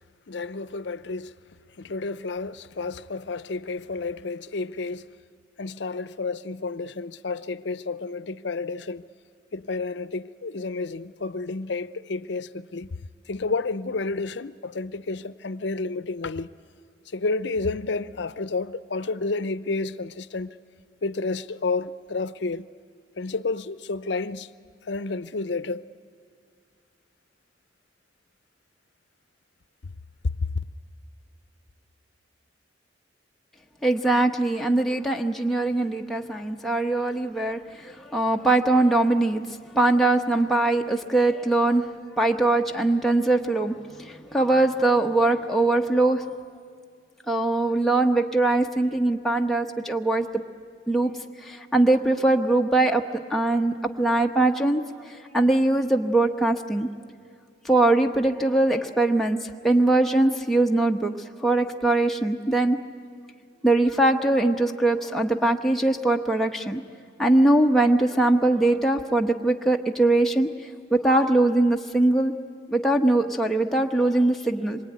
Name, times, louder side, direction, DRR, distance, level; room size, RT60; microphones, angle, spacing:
voice 1, 0.3-1.4 1.8-5.1 5.6-9.0 9.5-12.9 13.3-16.5 17.1-20.5 21.0-22.7 23.2-24.5 24.8-25.8 30.5-30.6, left 3 dB, 65° left, 0.6 m, -30 dB
voice 2, 33.8-39.4 39.7-41.9 42.2-46.3 47.3-50.4 50.9-51.1 51.4-53.0 53.3-56.9 57.6-61.1 61.4-62.8 63.6-66.8 67.2-70.5 70.9-72.3 72.7-74.8, right 2 dB, ahead, 1.0 m, -22 dB
26.0 x 23.5 x 9.4 m
head